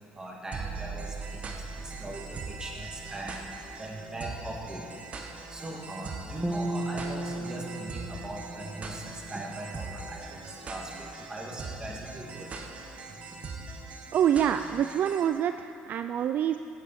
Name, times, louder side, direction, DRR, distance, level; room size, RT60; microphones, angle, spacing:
voice 1, 0.2-1.1 1.8-3.4 3.8-4.8 5.5-12.5, right 1 dB, 20° right, -1 dB, 2.2 m, -40 dB
sound 1, 0.5-15.3, right 4 dB, 40° right, 1.2 m, -41 dB
sound 2, 6.4-9.8, right 1 dB, 5° left, 0.8 m, -35 dB
voice 2, 14.1-16.6, right 9 dB, 55° right, 9 dB, 0.3 m, -26 dB
16.5 x 8.1 x 4.3 m, 2.8 s
supercardioid pair, 95°, 4 cm